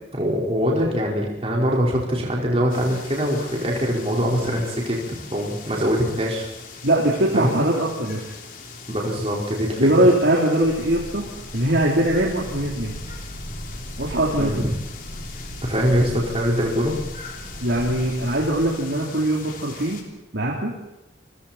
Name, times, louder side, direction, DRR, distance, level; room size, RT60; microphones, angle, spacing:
voice 1, 0.2-5.0 5.3-6.5 7.3-7.6 8.9-9.9 14.4-14.7 15.6-17.0, equal, 30° right, -3 dB, 5.0 m, -23 dB
sound 1, 2.7-20.0, left 4 dB, 45° left, 3.6 m, -41 dB
voice 2, 6.8-8.2 9.8-11.2 11.5-12.9 14.0-14.5 17.6-20.0 20.3-20.7, right 1 dB, 65° right, -4 dB, 4.0 m, -21 dB
sound 2, 10.6-18.7, equal, 25° left, 7.8 m, -37 dB
28.5 x 23.0 x 4.5 m, 0.91 s
head